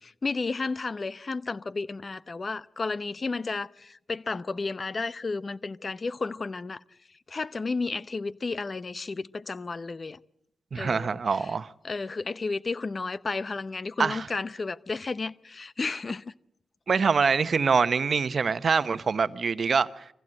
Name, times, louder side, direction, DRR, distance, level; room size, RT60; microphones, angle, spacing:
voice 1, 0.0-6.8 7.3-10.2 10.8-11.5 11.8-16.3, left 3 dB, 45° left, 0.8 m, -32 dB
voice 2, 10.7-11.7 14.0-14.3 16.9-20.1, right 5 dB, 60° right, 0.9 m, -25 dB
24.5 x 16.0 x 7.7 m
supercardioid pair, 50°, 0 cm